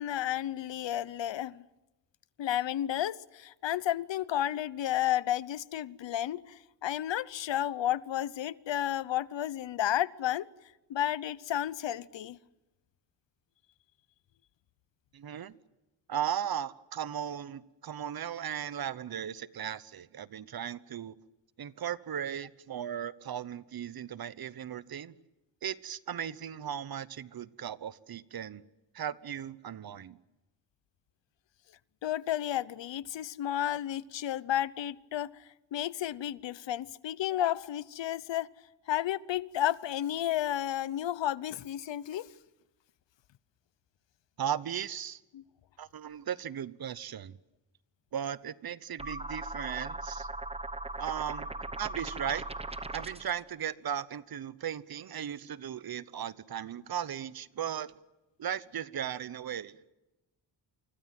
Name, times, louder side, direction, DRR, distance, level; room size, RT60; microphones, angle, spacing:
voice 1, 0.0-1.6 2.4-10.5 10.9-12.4 32.0-35.3 35.7-38.5 38.9-42.3 45.3-45.4, left 12 dB, 75° left, 0.9 m, -32 dB
voice 2, 15.1-15.6 16.1-21.1 21.6-25.1 25.6-28.6 28.9-30.2 44.4-45.2 45.8-47.4 48.1-50.3 51.0-52.4 52.9-58.0 58.4-59.7, right 9 dB, 55° right, 1.0 m, -37 dB
sound 1, 49.0-53.4, right 2 dB, 15° right, 1.0 m, -39 dB
28.0 x 25.0 x 7.7 m
wide cardioid pair, 130°, 44 cm